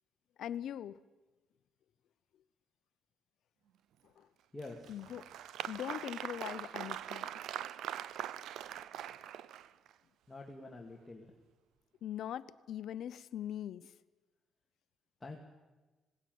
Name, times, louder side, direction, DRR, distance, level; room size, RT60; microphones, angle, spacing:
voice 1, 0.4-1.0 4.0-4.3 4.9-5.3 5.7-7.3 12.0-13.9, left 10 dB, 75° left, 15 dB, 0.8 m, -41 dB
voice 2, 4.5-5.1 10.3-11.3 15.2-15.4, left 2 dB, 15° left, 0 dB, 2.4 m, -47 dB
Applause, 4.6-9.9, right 11 dB, 80° right, 0.7 m, -42 dB
19.5 x 18.0 x 9.4 m, 1.2 s
cardioid pair, 90°, 0 cm